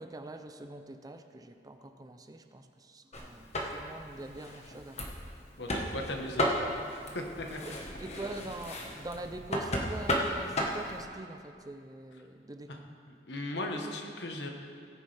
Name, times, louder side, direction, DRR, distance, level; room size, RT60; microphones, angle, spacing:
voice 1, 0.0-5.4 7.0-7.2 7.6-7.7 8.0-12.9, right 2 dB, 20° right, 7 dB, 0.5 m, -44 dB
sound 1, 3.1-11.0, left 1 dB, 40° left, 1.3 m, -35 dB
voice 2, 5.6-6.8 7.1-7.6 12.7-12.8 13.1-14.5, left 1 dB, 80° left, 2 dB, 1.3 m, -37 dB
17.5 x 9.7 x 3.4 m, 2.3 s
head